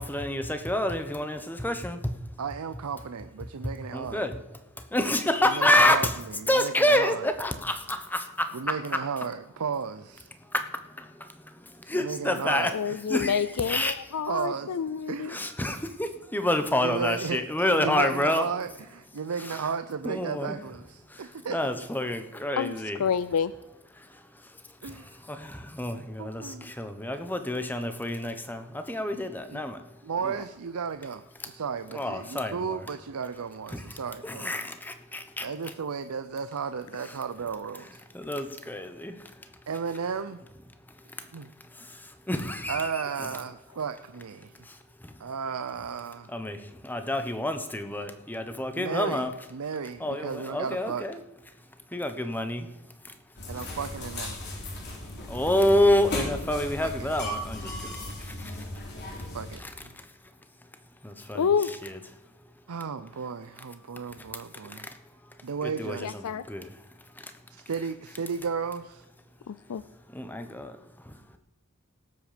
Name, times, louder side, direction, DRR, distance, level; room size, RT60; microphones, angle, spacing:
voice 1, 0.0-2.2 3.6-4.4 4.8-6.1 6.5-9.0 10.4-12.7 13.1-14.0 15.3-18.5 19.4-19.6 20.0-20.5 21.1-23.0 23.9-29.9 30.2-30.4 31.4-31.5 31.9-32.8 33.7-35.5 38.1-39.5 40.9-41.3 41.6-43.0 44.6-45.2 46.3-49.3 50.0-51.2 51.9-52.7 53.0-53.2 55.3-58.9 59.2-59.3 59.6-60.1 61.0-62.0 64.2-66.2 66.5-67.3 70.1-71.4, left 1 dB, 10° left, 8 dB, 1.0 m, -29 dB
voice 2, 2.4-4.3 5.5-7.3 8.5-10.3 11.9-12.8 14.3-14.8 15.1-15.4 16.8-17.4 17.8-21.6 24.8-25.2 26.2-26.7 29.5-29.6 30.0-34.5 35.4-37.9 39.7-40.4 41.3-41.5 42.7-44.7 45.2-46.3 48.8-51.0 53.5-54.5 56.8-57.1 59.3-59.9 62.7-64.9 65.4-66.1 67.5-69.0, right 6 dB, 85° right, 10 dB, 0.6 m, -34 dB
voice 3, 12.7-15.3 22.6-22.7 23.0-23.5 61.3-61.7 66.0-66.4 69.5-69.8, left 7 dB, 90° left, 15 dB, 0.4 m, -28 dB
sound 1, 53.4-59.6, left 1 dB, 50° left, 3.3 m, -36 dB
18.5 x 8.0 x 5.1 m, 1.0 s
head